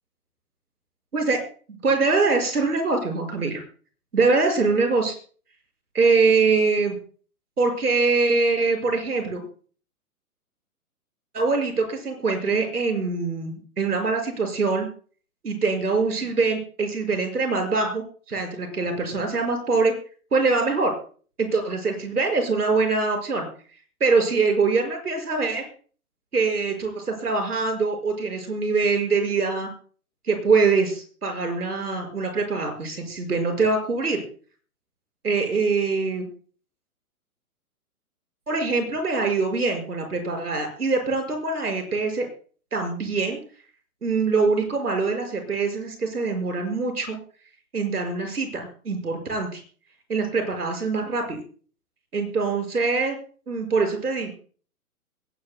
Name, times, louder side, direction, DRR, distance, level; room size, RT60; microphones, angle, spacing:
voice 1, 1.8-3.6 4.1-5.1 5.9-7.0 7.6-9.4 11.3-14.9 15.4-19.9 20.3-20.9 21.4-23.5 24.0-25.6 26.3-29.7 30.3-34.2 35.2-36.3 38.5-42.3 42.7-43.4 44.0-47.2 47.7-49.6 50.1-51.4 52.1-53.2 53.5-54.3, right 4 dB, 85° right, 4 dB, 5.8 m, -23 dB
22.0 x 17.5 x 2.2 m, 0.43 s
hypercardioid pair, 130°, 44 cm